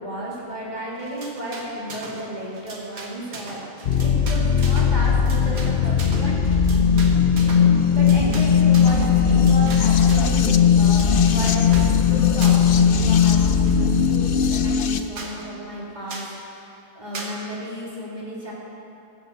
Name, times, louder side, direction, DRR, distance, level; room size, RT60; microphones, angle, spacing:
voice 1, 0.0-6.7 7.9-16.6 16.9-18.5, right 1 dB, 30° right, -5 dB, 3.0 m, -33 dB
sound 1, 1.0-2.3 2.5-10.4 10.8-11.9 12.4-12.8 13.1-14.1 14.5-14.6 14.9-15.0 15.2-15.4 16.1-16.4 17.1-17.4, right 3 dB, 80° right, 1.9 m, -38 dB
sound 2, 3.9-15.0, left 7 dB, 55° left, 0.6 m, -18 dB
14.5 x 8.4 x 6.8 m, 2.8 s
omnidirectional pair, 1.5 m